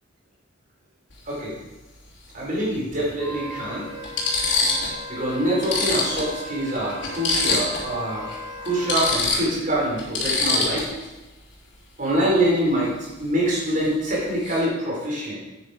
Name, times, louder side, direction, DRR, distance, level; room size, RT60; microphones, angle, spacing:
sound 1, 1.1-1.3 2.8-2.9 3.5-3.6 4.0-5.0 5.3-5.4 5.6-7.9 8.2-8.4 8.7-11.1 13.7-13.9 14.2-14.6, left 3 dB, 70° left, 3.4 m, -25 dB
voice 1, 2.3-3.9 5.1-8.3 8.6-10.9 12.0-12.9 13.2-15.4, right 1 dB, 45° right, -5 dB, 4.4 m, -25 dB
Wind instrument woodwind instrument, 3.2-9.2, left 1 dB, 30° left, 3.8 m, -37 dB
9.6 x 8.8 x 5.0 m, 1.1 s
head